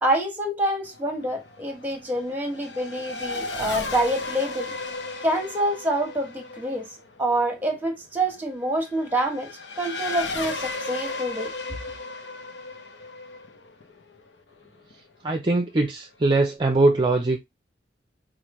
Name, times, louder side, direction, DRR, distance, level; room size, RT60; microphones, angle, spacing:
voice 1, 0.0-4.7 5.2-6.9 7.2-9.5 9.8-11.5, right 1 dB, 10° right, 1.2 m, -26 dB
Race car auto racing / Accelerating revving vroom, 0.8-14.9, left 3 dB, 85° left, 0.8 m, -35 dB
voice 2, 15.2-17.5, right 2 dB, 30° right, 0.5 m, -21 dB
5.0 x 2.5 x 3.0 m
head